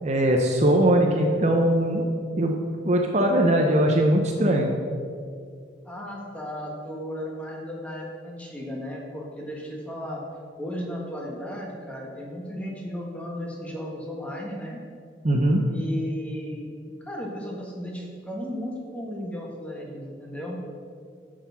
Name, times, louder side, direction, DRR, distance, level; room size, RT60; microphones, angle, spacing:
voice 1, 0.0-2.1 2.4-2.6 2.8-4.7 15.2-15.6, right 1 dB, 35° right, 2 dB, 0.7 m, -20 dB
voice 2, 5.8-10.2 10.6-14.8 15.7-16.7 17.0-20.6, equal, 5° left, -2 dB, 1.4 m, -35 dB
7.6 x 6.5 x 5.7 m, 2.3 s
head